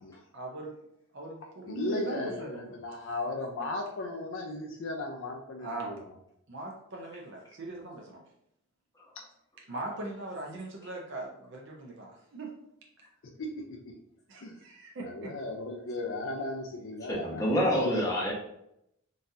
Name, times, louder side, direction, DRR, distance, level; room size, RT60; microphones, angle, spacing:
voice 1, 0.3-0.7 1.1-2.8 5.6-6.0 6.5-8.2 9.7-12.5 14.3-15.3 17.5-17.8, right 2 dB, 55° right, -1 dB, 0.6 m, -40 dB
voice 2, 1.7-6.1 9.2-9.3 13.2-13.9 14.4-14.6 15.1-17.9, left 2 dB, 60° left, 2 dB, 0.5 m, -36 dB
voice 3, 17.1-18.3, equal, 15° left, -5 dB, 0.8 m, -27 dB
3.9 x 2.5 x 2.7 m, 0.77 s
head